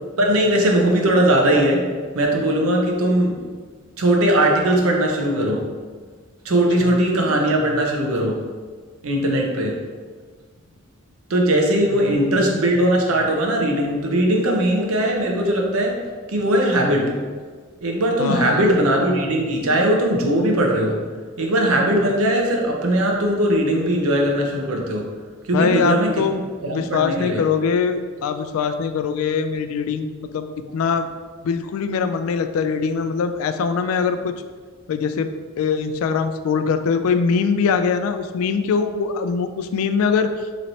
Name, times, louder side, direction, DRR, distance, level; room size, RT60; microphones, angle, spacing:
voice 1, 0.2-1.8 2.1-3.4 4.0-5.6 6.4-8.4 9.0-9.8 11.3-16.0 16.3-17.1 17.8-21.0 21.4-25.1 25.5-26.1 26.6-27.4, right 1 dB, 90° right, 1 dB, 0.7 m, -19 dB
voice 2, 11.9-12.4 18.2-18.7 25.5-26.4 26.7-30.5 30.7-31.1 31.4-34.3 34.9-35.3 35.6-40.5, left 5 dB, 85° left, 12 dB, 0.3 m, -22 dB
3.1 x 2.7 x 4.1 m, 1.5 s
head